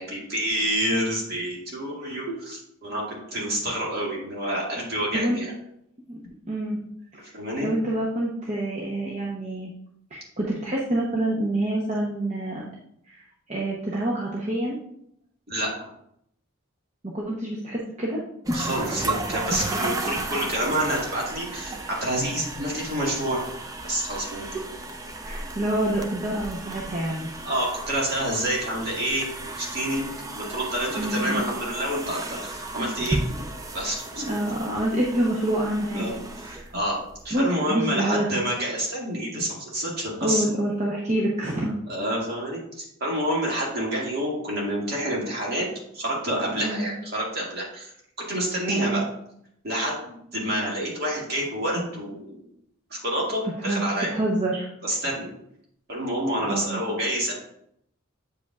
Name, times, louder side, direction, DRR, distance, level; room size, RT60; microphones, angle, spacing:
voice 1, 0.0-5.5 7.3-7.7 15.5-15.7 18.5-23.5 23.8-24.6 27.4-29.3 29.6-30.1 30.3-33.2 33.7-34.4 35.9-36.1 36.5-37.0 37.2-40.4 41.9-45.7 45.9-47.9 48.3-49.0 49.6-52.4 52.9-54.1 54.8-55.3 55.9-57.3, right 1 dB, 45° right, -3 dB, 1.9 m, -28 dB
voice 2, 2.0-2.4 5.1-5.4 6.1-6.2 6.5-6.8 7.1-7.2 7.6-9.7 10.1-12.6 13.1-14.8 17.0-18.2 24.4-24.5 25.2-27.3 31.0-31.4 34.1-36.1 36.4-36.7 37.3-38.3 40.2-41.7 46.5-46.9 48.7-49.1 53.6-54.7 56.4-56.8, right 1 dB, 30° right, -4 dB, 0.8 m, -27 dB
sound 1, 18.5-37.3, right 2 dB, 15° right, 0.3 m, -34 dB
8.1 x 5.0 x 2.3 m, 0.73 s
head